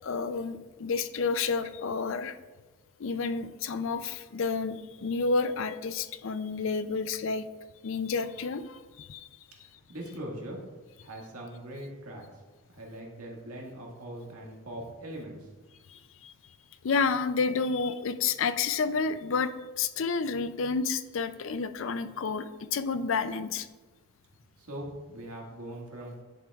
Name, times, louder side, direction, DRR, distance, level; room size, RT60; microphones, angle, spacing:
voice 1, 0.0-2.4 3.0-7.5 7.8-9.3 15.9-16.3 16.8-23.7, left 4 dB, 60° left, 12 dB, 0.4 m, -30 dB
voice 2, 9.6-10.6 11.0-12.4 12.7-15.5 24.6-26.2, right 1 dB, 80° right, -2 dB, 1.8 m, -41 dB
11.0 x 6.8 x 2.4 m, 1.2 s
head